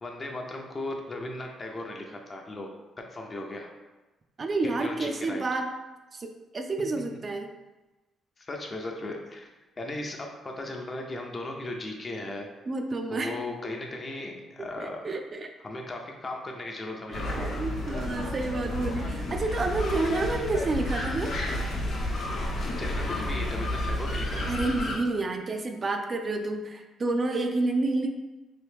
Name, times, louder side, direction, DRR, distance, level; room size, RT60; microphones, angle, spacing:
voice 1, 0.0-2.7 3.0-3.7 4.8-5.4 8.4-9.5 9.8-12.5 13.1-15.1 15.6-17.5 22.8-24.5, left 2 dB, 30° left, 1 dB, 0.6 m, -37 dB
voice 2, 4.4-5.7 6.1-7.5 12.7-13.3 14.8-15.5 17.1-21.3 24.5-28.1, right 2 dB, 40° right, 4 dB, 0.3 m, -29 dB
sound 1, 17.1-24.9, left 1 dB, 65° left, 0.9 m, -31 dB
3.0 x 2.6 x 3.4 m, 1.1 s
cardioid pair, 90°, 0 cm